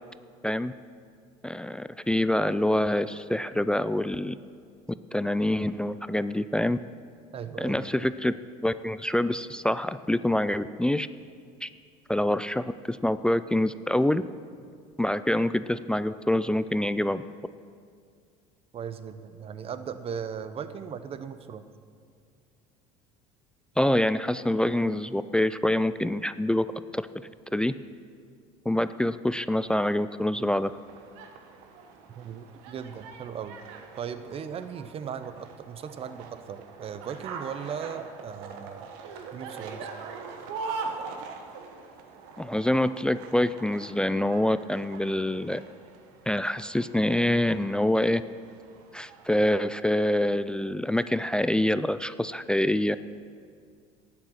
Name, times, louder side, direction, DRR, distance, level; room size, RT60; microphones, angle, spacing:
voice 1, 1.4-4.4 5.1-6.8 7.6-8.3 8.6-11.1 11.6-11.7 12.1-14.2 15.0-17.2 23.8-26.7 26.9-27.0 27.5-27.7 28.7-30.7 42.4-45.6 46.3-48.2 48.9-53.0, left 1 dB, 5° left, 13 dB, 0.3 m, -26 dB
voice 2, 7.3-7.9 18.7-21.6 32.2-33.6 34.0-38.9 39.3-39.9, right 7 dB, 40° right, 12 dB, 0.8 m, -37 dB
sound 1, 30.3-49.5, right 4 dB, 75° right, 1.2 m, -43 dB
11.5 x 9.0 x 6.4 m, 2.2 s
supercardioid pair, 90°, 16 cm